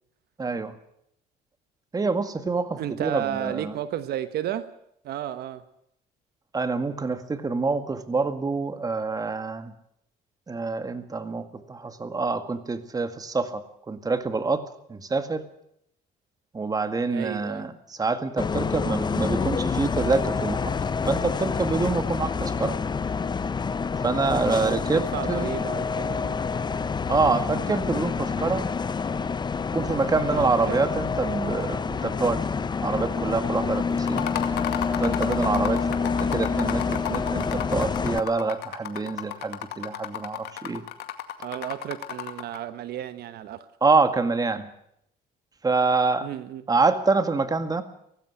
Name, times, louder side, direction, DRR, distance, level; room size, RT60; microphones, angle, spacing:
voice 1, 0.4-0.7 1.9-3.7 6.5-9.7 10.5-14.6 14.9-15.4 16.5-20.7 21.1-22.8 24.0-25.5 27.1-28.7 29.7-34.3 35.0-40.8 43.8-44.7 45.6-46.3 46.7-47.8, right 4 dB, 20° right, 10 dB, 1.9 m, -26 dB
voice 2, 2.8-4.7 5.0-5.6 17.1-17.7 24.4-26.4 30.3-30.8 41.4-43.7 46.2-46.6, right 11 dB, 70° right, 12 dB, 1.2 m, -33 dB
Bus, 18.4-38.2, left 5 dB, 25° left, 0.8 m, -27 dB
sound 1, 34.0-42.6, left 12 dB, 75° left, 2.2 m, -34 dB
18.0 x 16.0 x 9.9 m, 0.75 s
cardioid pair, 110°, 17 cm